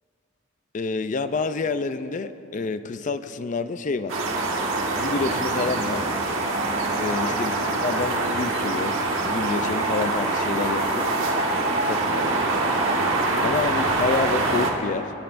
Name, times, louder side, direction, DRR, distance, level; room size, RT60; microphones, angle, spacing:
voice 1, 0.7-4.2 4.9-6.1 7.0-7.6 7.8-9.0 9.2-11.1 11.8-12.4 13.4-15.1, left 4 dB, 35° left, 11 dB, 0.4 m, -28 dB
sound 1, 4.1-14.7, right 2 dB, 75° right, 1.4 m, -24 dB
25.0 x 9.8 x 2.5 m, 3.0 s
head